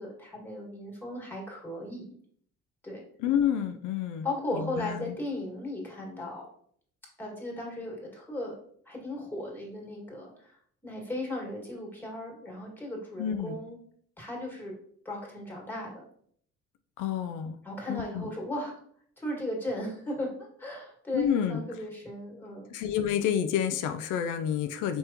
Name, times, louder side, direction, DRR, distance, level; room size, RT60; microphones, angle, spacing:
voice 1, 0.0-2.1 2.8-3.0 4.2-6.4 7.2-8.6 8.9-10.6 10.8-13.8 14.2-14.7 15.0-16.0 17.6-18.7 19.2-22.7, left 1 dB, 5° left, -2 dB, 2.0 m, -36 dB
voice 2, 3.2-4.3 4.5-5.2 13.2-13.6 17.0-17.6 17.9-18.3 21.1-21.6 22.7-25.0, left 9 dB, 90° left, 8 dB, 0.5 m, -29 dB
5.3 x 3.4 x 2.9 m, 0.62 s
cardioid pair, 90°, 30 cm